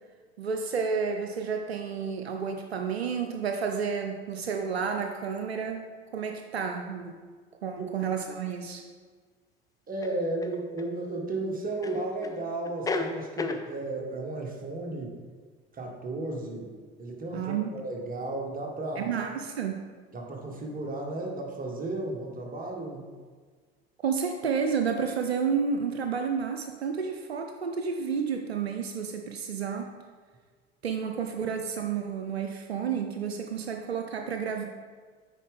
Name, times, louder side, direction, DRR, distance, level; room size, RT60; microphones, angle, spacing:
voice 1, 0.4-7.2 7.6-8.8 17.3-17.7 19.0-19.8 24.0-30.0 30.8-34.6, right 6 dB, 85° right, 5 dB, 0.5 m, -31 dB
sound 1, 8.3-8.4 10.0-10.9 11.8-12.4 12.6-13.7, left 3 dB, 10° left, 0.5 m, -33 dB
voice 2, 9.9-15.2 15.7-16.7 17.0-19.1 20.1-23.0, right 2 dB, 30° right, 0 dB, 1.5 m, -34 dB
9.1 x 4.4 x 3.6 m, 1.5 s
figure-of-eight pair, 65°, 31 cm